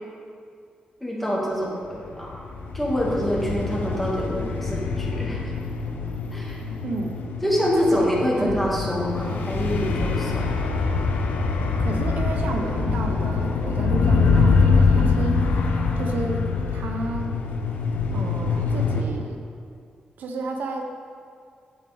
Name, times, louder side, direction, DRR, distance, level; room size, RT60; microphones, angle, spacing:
voice 1, 1.0-2.3 2.7-5.4 6.3-6.6 7.4-10.5, equal, 5° left, -5 dB, 2.1 m, -26 dB
sound 1, 2.1-19.0, left 4 dB, 85° left, 0.8 m, -24 dB
voice 2, 6.8-7.2 7.7-8.1 8.3-8.6 11.8-15.5 16.0-17.3 18.1-19.4 20.2-20.9, right 3 dB, 80° right, 3 dB, 0.9 m, -31 dB
9.4 x 8.2 x 3.5 m, 2.2 s
wide cardioid pair, 115°, 3 cm